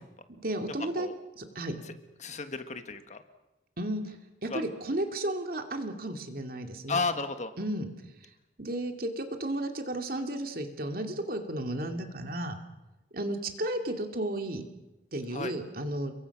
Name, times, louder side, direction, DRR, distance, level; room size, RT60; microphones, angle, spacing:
voice 1, 0.3-1.1 1.4-1.7 3.8-4.1 4.4-7.0 7.6-7.9 8.6-12.6 13.1-14.6 15.1-16.1, right 1 dB, 55° right, 5 dB, 2.6 m, -33 dB
voice 2, 2.2-3.2 4.5-4.6 6.9-7.5 15.3-15.5, left 4 dB, 40° left, 8 dB, 1.6 m, -33 dB
30.0 x 22.5 x 6.1 m, 0.99 s
head